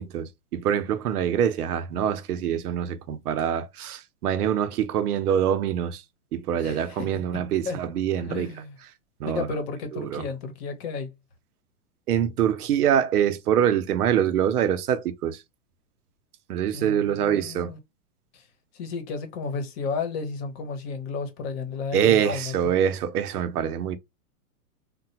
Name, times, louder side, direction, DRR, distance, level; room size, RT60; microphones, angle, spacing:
voice 1, 0.0-6.0 6.3-8.5 9.2-9.5 9.9-10.2 12.1-15.4 16.5-17.7 21.9-24.0, right 9 dB, 85° right, 0.7 m, -25 dB
voice 2, 6.6-7.1 7.7-7.8 8.2-8.7 9.2-11.1 16.7-17.8 18.3-18.4 18.7-22.5, left 4 dB, 45° left, 0.9 m, -32 dB
3.2 x 2.2 x 2.8 m
hypercardioid pair, 145°, 44 cm